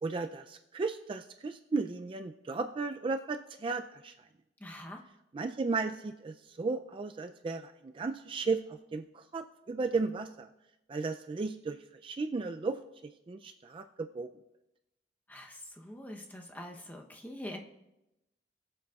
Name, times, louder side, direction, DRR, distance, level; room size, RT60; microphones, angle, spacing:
voice 1, 0.0-4.1 5.3-10.5 10.9-12.8 13.3-14.3, right 4 dB, 30° right, 7 dB, 0.3 m, -35 dB
voice 2, 4.6-5.0 15.3-17.6, left 1 dB, 10° left, 2 dB, 0.8 m, -44 dB
20.5 x 7.6 x 2.4 m, 0.92 s
head